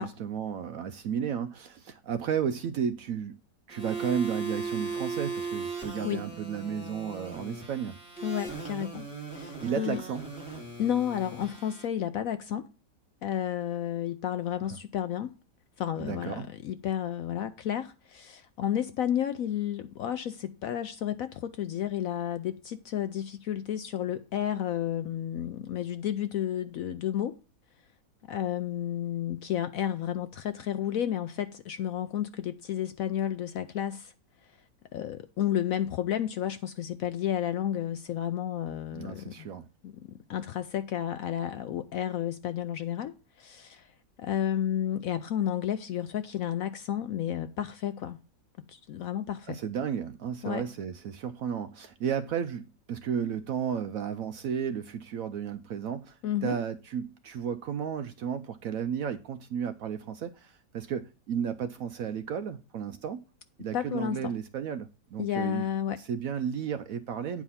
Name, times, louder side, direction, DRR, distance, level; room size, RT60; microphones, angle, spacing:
voice 1, 0.0-3.4 3.7-8.0 9.6-10.3 14.7-14.8 16.0-16.5 38.9-39.7 49.5-63.2 63.6-65.7 66.0-67.4, right 7 dB, 70° right, 0.8 m, -33 dB
sound 1, 3.7-11.8, right 4 dB, 5° right, 3.4 m, -38 dB
voice 2, 8.2-9.1 9.3-10.0 10.8-12.7 13.2-15.3 15.8-27.4 28.3-34.1 34.9-39.5 39.8-43.9 44.2-48.2 48.7-49.6 50.4-50.6 56.2-56.6 63.7-64.3 65.2-66.0, left 10 dB, 70° left, 0.8 m, -31 dB
9.3 x 4.8 x 5.5 m
omnidirectional pair, 1.9 m